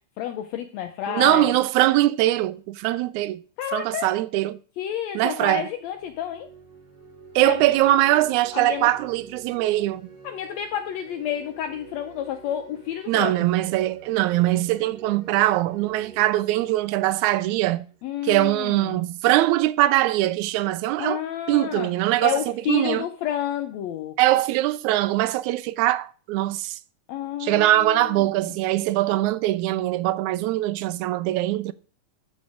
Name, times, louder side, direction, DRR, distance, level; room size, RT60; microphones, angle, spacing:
voice 1, 0.2-1.5 3.6-4.1 4.8-6.5 7.4-7.8 8.5-8.9 9.8-9.9 10.2-13.3 18.0-19.0 21.0-21.9 22.2-24.2 27.1-28.3, left 10 dB, 75° left, 1.7 m, -30 dB
voice 2, 1.1-3.4 3.7-4.6 5.2-5.7 7.4-10.1 13.1-17.9 18.2-21.2 21.5-22.4 22.7-23.1 24.2-26.8 27.4-31.7, right 15 dB, 80° right, 1.9 m, -22 dB
sound 1, 5.8-18.4, right 6 dB, 35° right, 4.0 m, -48 dB
12.0 x 4.3 x 4.8 m
omnidirectional pair, 3.5 m